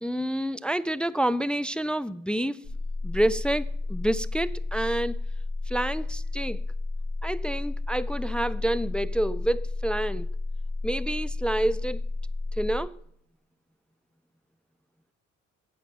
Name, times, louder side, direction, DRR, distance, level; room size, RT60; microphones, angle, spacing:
voice 1, 0.0-2.7 3.0-5.2 5.7-6.6 7.2-10.3 10.8-12.0 12.6-13.0, right 1 dB, 5° left, 0.3 m, -28 dB
sound 1, 2.6-12.8, left 2 dB, 45° left, 3.1 m, -32 dB
16.5 x 5.5 x 5.1 m
cardioid pair, 90°, 30 cm